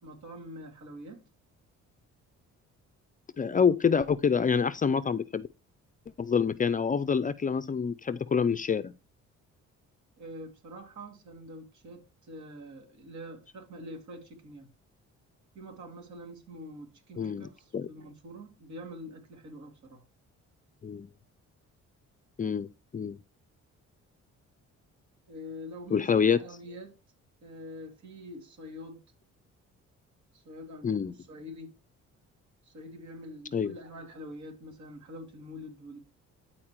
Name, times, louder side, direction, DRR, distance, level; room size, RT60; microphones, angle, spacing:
voice 1, 0.0-1.2 10.2-14.7 15.5-20.0 25.3-27.0 27.4-29.0 30.3-31.7 32.6-36.0, equal, 70° right, 2.5 m, -45 dB
voice 2, 3.4-5.5 6.2-8.9 17.2-17.9 20.8-21.1 22.4-22.7 22.9-23.2 25.9-26.4 30.8-31.1 33.5-33.7, left 6 dB, 25° left, 0.4 m, -27 dB
13.0 x 4.4 x 3.0 m
cardioid pair, 90°, 30 cm